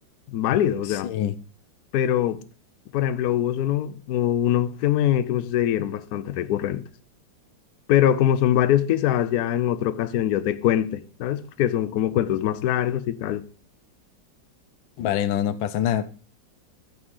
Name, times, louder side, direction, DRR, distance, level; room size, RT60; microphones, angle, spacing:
voice 1, 0.3-1.1 1.9-2.4 2.9-6.8 7.9-13.4, left 11 dB, 65° left, 1.0 m, -23 dB
voice 2, 0.9-1.3 15.0-16.1, left 11 dB, 90° left, 1.4 m, -25 dB
14.5 x 4.8 x 4.7 m
omnidirectional pair, 2.0 m